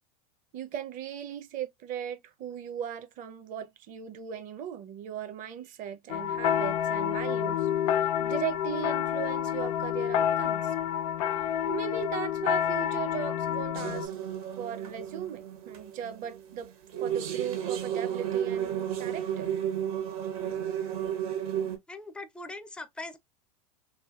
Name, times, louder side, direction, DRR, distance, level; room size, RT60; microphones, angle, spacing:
voice 1, 0.5-7.7 8.0-10.7 11.7-14.1 14.6-16.7 17.0-19.5, right 9 dB, 45° right, 0.6 m, -38 dB
sound 1, 6.1-14.1, left 10 dB, 70° left, 0.5 m, -28 dB
sound 2, 13.7-21.8, right 9 dB, 70° right, 1.1 m, -33 dB
voice 2, 21.9-23.2, left 2 dB, 5° left, 0.4 m, -41 dB
3.3 x 2.7 x 2.3 m
hypercardioid pair, 100°, 19 cm